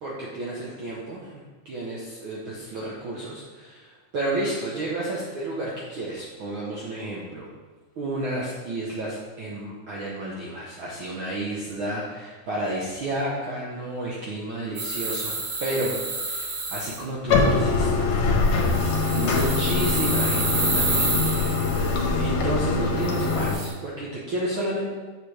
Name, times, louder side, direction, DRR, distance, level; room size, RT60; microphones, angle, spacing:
voice 1, 0.0-7.5 8.0-18.1 19.1-24.9, right 1 dB, 70° right, -5 dB, 1.2 m, -31 dB
sound 1, 14.8-17.0 18.5-22.0 23.0-23.7, right 3 dB, 55° right, 2.1 m, -29 dB
Bathtub (filling or washing), 17.3-23.5, left 3 dB, 70° left, 2.3 m, -23 dB
7.9 x 6.5 x 3.3 m, 1.3 s
omnidirectional pair, 3.5 m